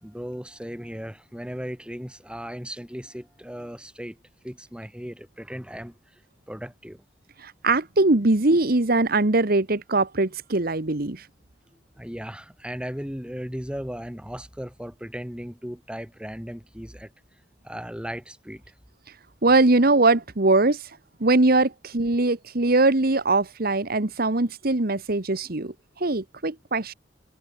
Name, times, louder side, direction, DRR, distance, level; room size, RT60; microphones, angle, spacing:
voice 1, 0.0-4.2 4.4-6.0 6.5-7.0 12.0-17.1 17.6-18.6, equal, 5° right, 3.3 m, -36 dB
voice 2, 7.4-11.3 19.4-20.9 21.2-26.9, right 2 dB, 55° right, 1.5 m, -21 dB
head